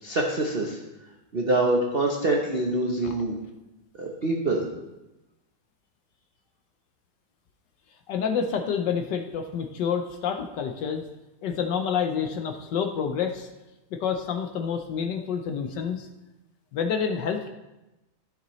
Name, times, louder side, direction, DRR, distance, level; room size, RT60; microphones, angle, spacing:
voice 1, 0.0-0.8 1.3-3.4 4.0-4.7, right 2 dB, 60° right, 0 dB, 0.6 m, -25 dB
voice 2, 8.1-11.0 11.4-13.5 13.9-16.1 16.7-17.5, left 7 dB, 70° left, 5 dB, 1.2 m, -28 dB
13.0 x 6.7 x 3.1 m, 0.98 s
omnidirectional pair, 2.3 m